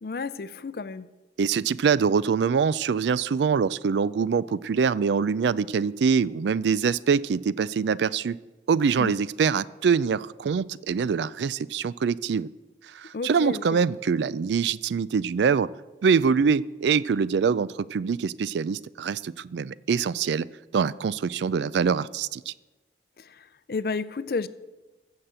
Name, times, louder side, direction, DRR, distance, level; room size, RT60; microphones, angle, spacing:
voice 1, 0.0-1.1 9.0-9.2 13.1-13.8 23.2-24.5, left 4 dB, 55° left, 16 dB, 0.5 m, -32 dB
voice 2, 1.4-8.4 8.7-12.5 12.9-15.7 16.0-20.5 20.7-22.5, right 6 dB, 80° right, 19 dB, 0.4 m, -24 dB
14.5 x 5.8 x 7.7 m, 1.2 s
head